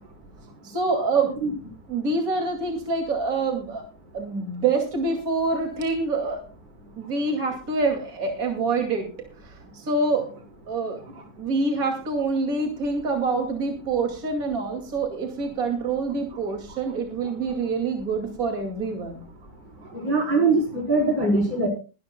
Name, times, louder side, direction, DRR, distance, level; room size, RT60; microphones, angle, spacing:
voice 1, 0.6-1.3 1.9-3.8 4.1-6.4 7.0-9.1 9.4-10.3 10.7-11.0 11.4-19.2, right 3 dB, 50° right, 3 dB, 2.9 m, -26 dB
voice 2, 20.0-21.7, right 3 dB, 80° right, 0 dB, 4.8 m, -21 dB
22.5 x 12.0 x 2.2 m, 0.33 s
omnidirectional pair, 1.9 m